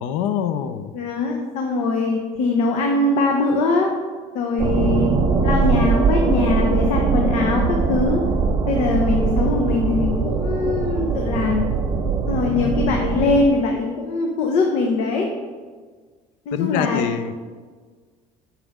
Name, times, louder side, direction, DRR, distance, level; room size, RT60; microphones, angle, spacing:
voice 1, 0.0-0.9 12.5-13.0 16.5-17.3, left 8 dB, 90° left, 11 dB, 0.6 m, -25 dB
voice 2, 0.9-3.9 4.3-5.1 5.4-8.2 8.7-11.6 12.3-15.3 16.5-17.1, left 3 dB, 60° left, 1 dB, 0.9 m, -22 dB
sound 1, 4.6-13.5, right 4 dB, 30° right, 0.7 m, -21 dB
8.9 x 6.1 x 3.6 m, 1.5 s
cardioid pair, 170°, 13 cm